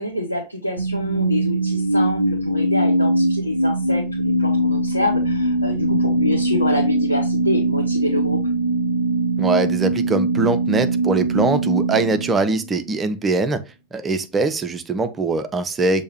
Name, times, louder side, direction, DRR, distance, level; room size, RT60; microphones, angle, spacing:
voice 1, 0.0-8.4, left 2 dB, 85° left, 0.8 m, -26 dB
sound 1, 0.8-12.9, right 2 dB, 85° right, 0.3 m, -21 dB
voice 2, 9.4-13.6 13.9-16.0, right 3 dB, 20° right, 0.5 m, -22 dB
6.4 x 2.7 x 2.9 m
figure-of-eight pair, 90°, 0 cm